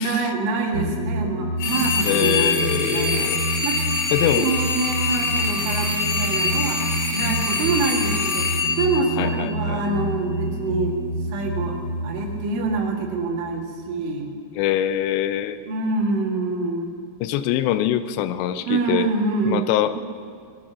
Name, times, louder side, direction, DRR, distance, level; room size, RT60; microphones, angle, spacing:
voice 1, 0.0-3.8 4.4-11.0 11.3-11.8 12.0-14.3 15.7-16.9 18.7-19.7, right 3 dB, 75° right, 1 dB, 4.3 m, -26 dB
sound 1, 0.7-13.9, right 1 dB, 30° left, 2.6 m, -29 dB
Old Phone Ringing, 1.6-9.8, left 4 dB, 60° left, 3.3 m, -25 dB
voice 2, 2.0-3.4 4.1-4.5 9.2-9.8 14.6-15.6 17.2-19.1 19.5-20.0, left 12 dB, 80° left, 12 dB, 2.6 m, -24 dB
20.5 x 11.0 x 6.1 m, 2.3 s
omnidirectional pair, 5.5 m